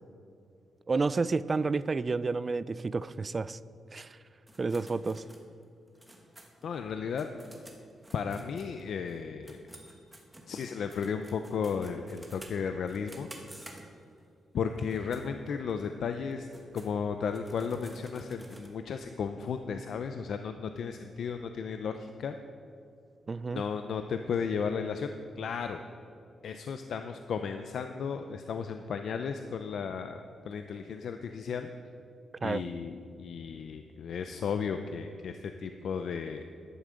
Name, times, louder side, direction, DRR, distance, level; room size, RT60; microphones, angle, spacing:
voice 1, 0.9-3.6 3.9-4.2 4.6-5.2 23.3-23.6 32.4-32.6, right 4 dB, 25° right, 17 dB, 0.3 m, -30 dB
sound 1, 4.5-9.2 9.4-14.2 14.8-15.3 15.7-15.8 16.3-18.7, right 1 dB, 5° right, 1.3 m, -52 dB
voice 2, 6.6-7.3 8.1-9.6 10.5-13.3 14.5-16.5 16.7-22.4 23.5-25.8 26.4-31.7 32.4-36.4, left 6 dB, 60° left, 7 dB, 0.5 m, -34 dB
14.0 x 11.0 x 5.2 m, 2.5 s
wide cardioid pair, 165°, 0 cm